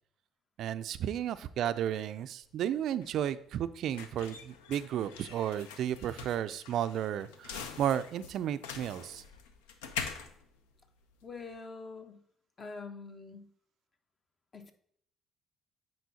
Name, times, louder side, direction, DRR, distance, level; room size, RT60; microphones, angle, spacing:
voice 1, 0.6-9.2, right 10 dB, 65° right, 13 dB, 0.3 m, -33 dB
sound 1, 2.4-11.5, left 6 dB, 85° left, 0.5 m, -44 dB
voice 2, 11.2-12.2 12.6-13.5 14.5-14.7, left 4 dB, 40° left, 6 dB, 1.0 m, -45 dB
9.3 x 4.4 x 2.7 m, 0.67 s
hypercardioid pair, 55°, 0 cm